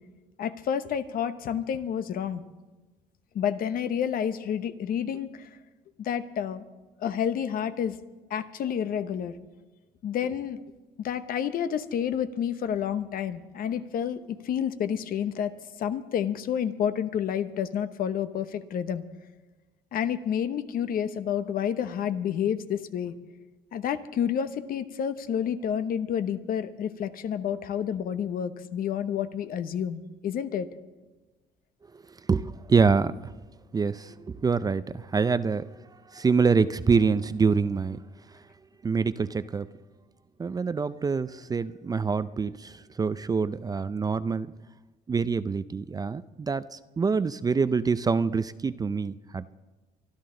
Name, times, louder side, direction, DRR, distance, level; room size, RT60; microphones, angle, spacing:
voice 1, 0.4-2.4 3.3-5.5 6.0-6.6 7.0-8.0 8.3-9.3 10.0-10.6 11.0-15.5 15.8-19.0 19.9-23.1 23.7-30.7, left 8 dB, 60° left, 11 dB, 0.9 m, -29 dB
voice 2, 32.3-33.3 33.7-35.7 36.1-38.0 38.8-39.7 40.4-44.5 45.1-49.5, right 5 dB, 20° right, 14 dB, 0.4 m, -26 dB
25.0 x 11.5 x 3.8 m, 1.2 s
cardioid pair, 110°, 17 cm